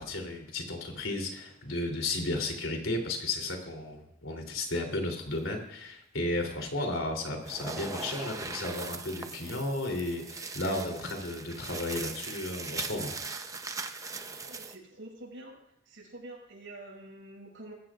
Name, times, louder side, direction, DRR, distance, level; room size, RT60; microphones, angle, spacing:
voice 1, 0.0-13.1, left 2 dB, 85° left, 2 dB, 3.3 m, -34 dB
sound 1, 7.4-14.8, right 4 dB, 15° right, 0.8 m, -40 dB
voice 2, 14.4-15.5 15.8-17.7, right 1 dB, 70° right, -1 dB, 6.7 m, -47 dB
21.5 x 15.0 x 2.5 m, 0.78 s
head